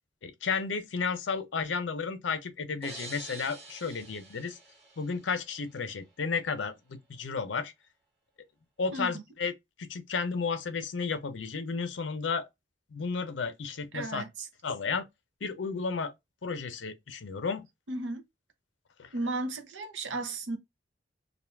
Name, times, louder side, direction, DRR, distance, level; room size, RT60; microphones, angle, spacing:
voice 1, 0.2-4.6 5.0-7.7 8.8-9.5 9.8-12.5 12.9-14.2 14.6-15.0 15.4-16.1 16.4-17.6 19.0-19.1, left 5 dB, 75° left, 0.6 m, -33 dB
sound 1, 2.8-5.6, right 2 dB, 30° right, 1.0 m, -47 dB
voice 2, 8.9-9.2 13.9-14.5 17.9-18.2 19.1-20.6, right 2 dB, 80° right, 0.7 m, -34 dB
2.5 x 2.4 x 3.3 m
head